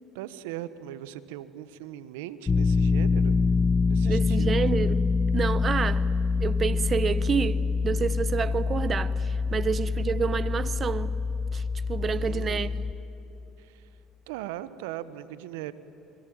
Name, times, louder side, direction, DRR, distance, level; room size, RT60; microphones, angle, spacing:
voice 1, 0.1-3.4 3.9-4.6 9.5-9.7 12.0-12.8 13.6-13.9 14.3-15.7, right 13 dB, 80° right, 1.1 m, -39 dB
sound 1, 2.5-12.9, left 4 dB, 30° left, 0.7 m, -25 dB
voice 2, 4.0-6.1 6.4-11.2 11.5-11.6 11.9-12.7, right 6 dB, 40° right, 1.1 m, -29 dB
28.0 x 22.0 x 8.9 m
hypercardioid pair, 70°, 0 cm